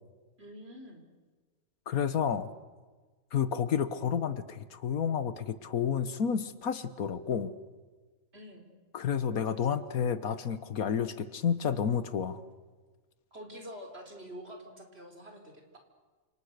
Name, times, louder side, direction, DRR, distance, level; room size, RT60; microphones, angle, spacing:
voice 1, 0.4-1.0 8.3-8.7 13.3-15.8, equal, 45° right, 3 dB, 4.6 m, -47 dB
voice 2, 1.9-2.5 3.3-7.5 8.9-12.4, left 7 dB, 80° left, 13 dB, 1.7 m, -30 dB
30.0 x 27.5 x 6.7 m, 1.4 s
omnidirectional pair, 1.5 m